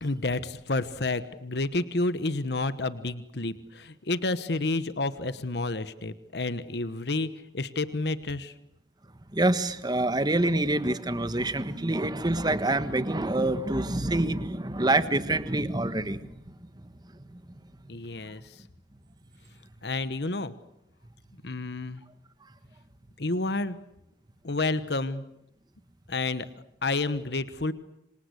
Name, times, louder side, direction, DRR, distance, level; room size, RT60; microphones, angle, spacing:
voice 1, 0.0-8.5 17.9-18.6 19.8-20.5 21.4-22.0 23.2-23.8 24.4-25.2 26.1-26.5 26.8-27.7, left 2 dB, 65° left, 13 dB, 1.2 m, -30 dB
voice 2, 9.3-16.3 16.6-17.4, right 2 dB, 25° right, 12 dB, 1.5 m, -27 dB
27.5 x 25.5 x 8.2 m, 0.81 s
head